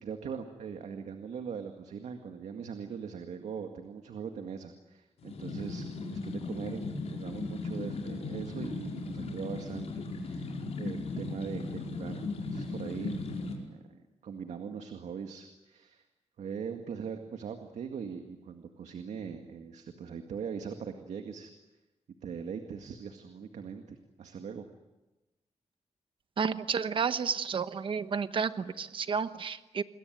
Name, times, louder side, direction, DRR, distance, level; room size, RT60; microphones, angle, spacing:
voice 1, 0.0-16.0 16.4-21.5 22.2-24.7, right 6 dB, 85° right, 6 dB, 2.0 m, -41 dB
sound 1, 5.2-13.5, left 3 dB, 70° left, 5.2 m, -37 dB
voice 2, 26.4-29.8, right 6 dB, 50° right, 12 dB, 1.1 m, -31 dB
27.5 x 21.5 x 9.4 m, 1.1 s
wide cardioid pair, 145°, 12 cm